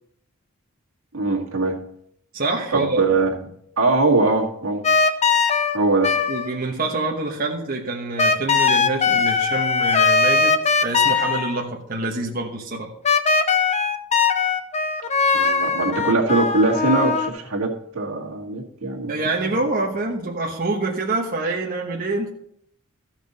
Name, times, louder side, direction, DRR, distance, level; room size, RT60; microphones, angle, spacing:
voice 1, 1.1-1.8 2.7-3.3 3.8-4.8 5.7-6.1 15.3-19.5, right 3 dB, 85° right, -1 dB, 1.9 m, -21 dB
voice 2, 2.3-3.1 6.3-12.9 19.1-22.3, right 2 dB, 45° right, -1 dB, 1.1 m, -26 dB
sound 1, 4.8-6.6 8.2-11.6 13.0-17.3, left 5 dB, 30° left, 0.7 m, -20 dB
14.5 x 5.9 x 4.2 m, 0.72 s
head